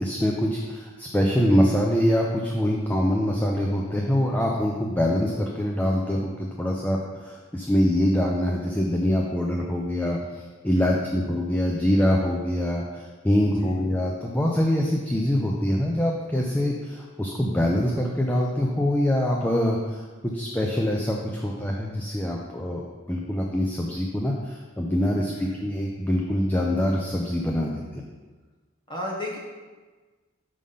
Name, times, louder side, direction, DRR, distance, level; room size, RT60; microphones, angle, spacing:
voice 1, 0.0-22.8 23.1-28.0, equal, 10° left, -1 dB, 0.5 m, -24 dB
voice 2, 10.7-11.0 13.4-13.8 25.3-25.6 28.9-29.4, left 1 dB, 25° left, -2 dB, 1.3 m, -35 dB
5.6 x 4.9 x 5.4 m, 1.3 s
head